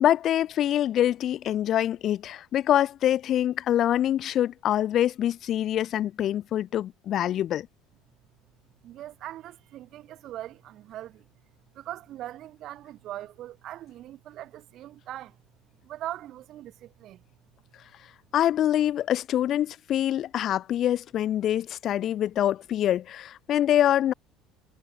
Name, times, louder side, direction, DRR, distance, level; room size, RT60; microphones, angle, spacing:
voice 1, 0.0-7.7 18.3-24.1, left 11 dB, 50° left, 0.3 m, -25 dB
voice 2, 8.8-11.3 11.7-15.4 15.8-17.2, right 13 dB, 55° right, 2.0 m, -40 dB
supercardioid pair, 115°, 0 cm